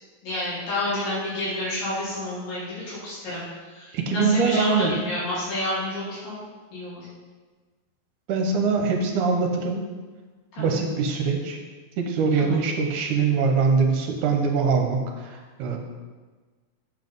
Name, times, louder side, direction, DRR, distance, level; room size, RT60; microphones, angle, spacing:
voice 1, 0.2-3.4 3.7-6.4 6.7-7.1 10.6-10.8 12.4-12.6, left 1 dB, 75° left, -9 dB, 4.5 m, -29 dB
voice 2, 3.9-4.9 8.3-9.8 10.6-11.6 12.0-15.8, right 4 dB, 70° right, 3 dB, 2.2 m, -23 dB
7.6 x 5.8 x 5.4 m, 1.3 s
omnidirectional pair, 3.9 m